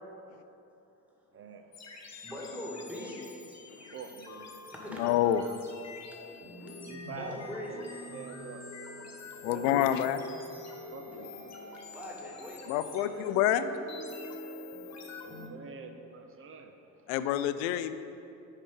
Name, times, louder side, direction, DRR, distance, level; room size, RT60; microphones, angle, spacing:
voice 1, 1.3-2.3 3.9-4.7 5.4-5.5 5.8-6.2 6.9-7.4 7.7-7.8 8.1-9.4 10.7-11.9 14.1-17.1, right 5 dB, 30° right, 6 dB, 0.8 m, -48 dB
sound 1, 1.7-15.5, left 2 dB, 35° left, 1.4 m, -45 dB
voice 2, 2.2-3.4 4.7-5.1 6.7-6.8 7.2-7.7 9.4-10.1 10.6-10.7 11.9-13.3, left 1 dB, 5° right, -3 dB, 1.8 m, -42 dB
voice 3, 5.0-5.4 9.4-10.2 12.7-13.7 17.1-17.9, left 11 dB, 65° left, 12 dB, 0.5 m, -27 dB
9.8 x 5.0 x 3.7 m, 2.8 s
figure-of-eight pair, 55°, 44 cm